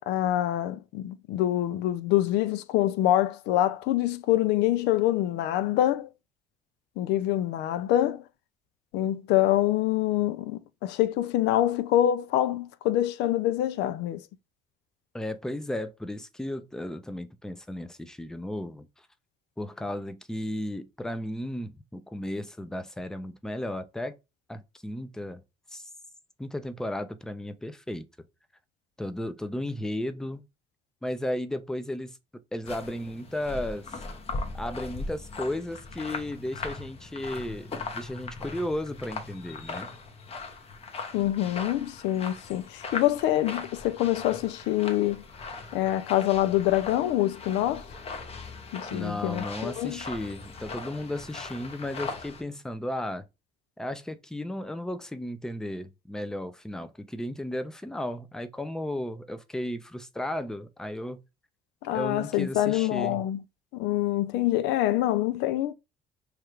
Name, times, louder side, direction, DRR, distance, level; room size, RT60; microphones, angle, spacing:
voice 1, 0.1-6.1 7.0-8.2 8.9-14.2 41.1-45.2 45.7-47.8 48.7-50.0 61.8-63.4 63.7-65.7, left 13 dB, 90° left, 0.4 m, -25 dB
voice 2, 15.1-18.9 19.6-24.2 24.5-25.4 25.7-25.9 26.4-28.1 29.0-30.5 31.0-32.2 32.5-34.0 34.5-39.9 48.9-53.2 53.8-61.2 61.9-63.2, left 1 dB, 5° left, 0.5 m, -34 dB
sound 1, 32.6-52.4, left 3 dB, 35° left, 0.8 m, -39 dB
3.2 x 2.4 x 4.4 m
cardioid pair, 110°, 17 cm